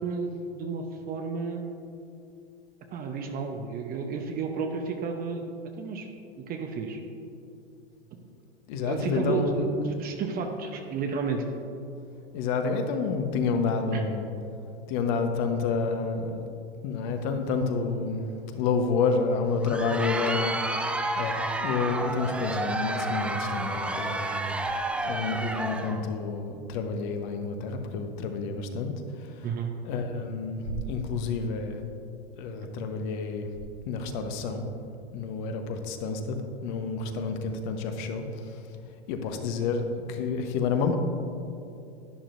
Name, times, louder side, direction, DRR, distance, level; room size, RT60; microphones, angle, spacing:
voice 1, 0.0-1.7 2.9-5.4 5.8-6.1 6.4-7.0 8.1-8.2 8.7-11.4 13.9-14.0 29.4-29.7, right 5 dB, 30° right, 4 dB, 0.8 m, -32 dB
voice 2, 8.7-9.7 12.3-14.2 14.9-16.5 16.8-18.2 18.5-20.5 21.2-24.5 25.0-28.9 29.8-31.8 32.4-33.5 33.9-34.6 35.1-38.2 39.1-41.0, left 4 dB, 50° left, 5 dB, 1.1 m, -29 dB
Crowd, 19.5-26.0, right 2 dB, 5° right, 0.3 m, -30 dB
11.0 x 10.0 x 2.6 m, 2.7 s
hypercardioid pair, 105°, 31 cm